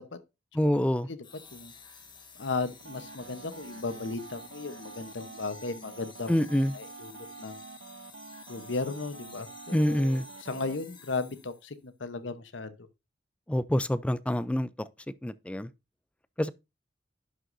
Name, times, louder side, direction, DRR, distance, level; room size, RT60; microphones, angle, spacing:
voice 1, 0.5-1.1 6.3-6.7 9.7-10.3 13.5-14.7 15.2-15.7 16.4-16.5, equal, 5° left, 0.3 m, -26 dB
sound 1, 1.2-11.8, left 5 dB, 25° left, 1.4 m, -52 dB
voice 2, 2.4-6.3 6.7-7.6 8.5-9.5 9.8-12.7, left 3 dB, 80° left, 0.9 m, -35 dB
sound 2, 2.8-10.8, right 4 dB, 70° right, 0.8 m, -47 dB
11.0 x 6.3 x 2.6 m
head